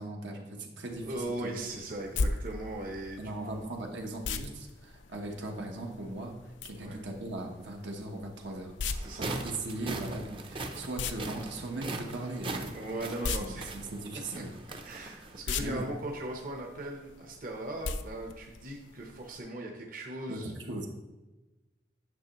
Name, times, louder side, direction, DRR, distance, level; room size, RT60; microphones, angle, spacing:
voice 1, 0.0-1.5 3.2-6.3 6.6-8.7 9.2-12.8 13.4-14.5 15.6-15.8 20.3-20.9, right 2 dB, 75° right, 1 dB, 1.1 m, -38 dB
sound 1, 0.9-19.4, left 4 dB, 85° left, 0.5 m, -40 dB
voice 2, 1.0-3.6 6.8-7.0 9.0-9.3 12.7-13.7 14.3-14.4 14.8-20.5, right 1 dB, 50° right, 0 dB, 0.9 m, -39 dB
sound 2, 8.9-15.4, right 2 dB, 30° right, 0.6 m, -40 dB
9.3 x 6.0 x 3.0 m, 1.1 s
head